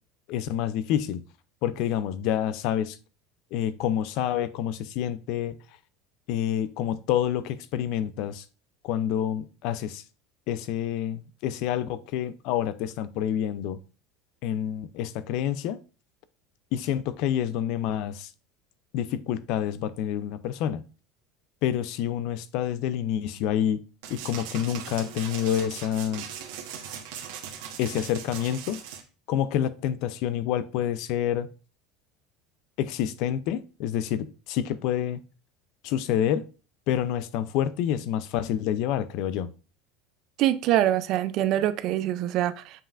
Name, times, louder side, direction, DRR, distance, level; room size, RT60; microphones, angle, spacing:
voice 1, 0.3-1.2 1.6-3.0 3.5-5.6 6.3-8.4 8.8-10.0 10.5-13.8 14.4-15.8 16.7-18.3 18.9-20.8 21.6-23.8 24.1-26.3 27.8-28.8 29.3-31.5 32.8-35.2 35.8-36.5 36.9-39.5, left 10 dB, 55° left, 0.4 m, -28 dB
sound 1, 24.0-29.0, right 8 dB, 75° right, 1.2 m, -39 dB
voice 2, 40.4-42.8, right 13 dB, 45° right, 0.4 m, -24 dB
7.4 x 5.4 x 2.5 m
cardioid pair, 165°, 0 cm